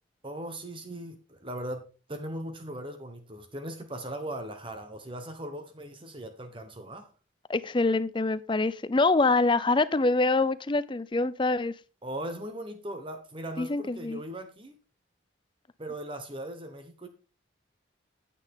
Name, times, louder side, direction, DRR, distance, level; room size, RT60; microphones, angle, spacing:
voice 1, 0.2-7.1 12.0-14.8 15.8-17.1, right 1 dB, 25° right, 1.1 m, -39 dB
voice 2, 7.5-11.7 13.6-14.2, left 3 dB, 25° left, 0.5 m, -25 dB
9.7 x 8.5 x 3.7 m
head